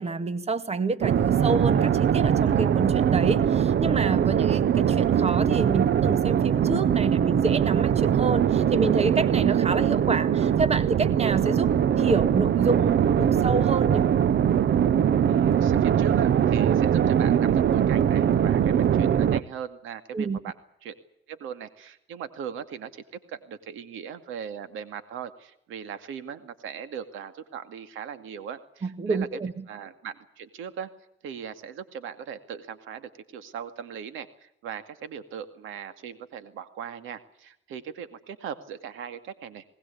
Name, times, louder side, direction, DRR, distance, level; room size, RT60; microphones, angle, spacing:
voice 1, 0.0-14.1 20.1-20.4 28.8-29.6, right 4 dB, 30° right, 12 dB, 1.8 m, -28 dB
sound 1, 1.0-19.4, right 9 dB, 60° right, 1.0 m, -22 dB
voice 2, 15.3-20.5 20.8-21.0 21.3-29.4 29.7-30.9 31.2-39.6, right 7 dB, 90° right, 10 dB, 2.3 m, -39 dB
20.5 x 19.5 x 8.5 m, 0.75 s
cardioid pair, 90°, 20 cm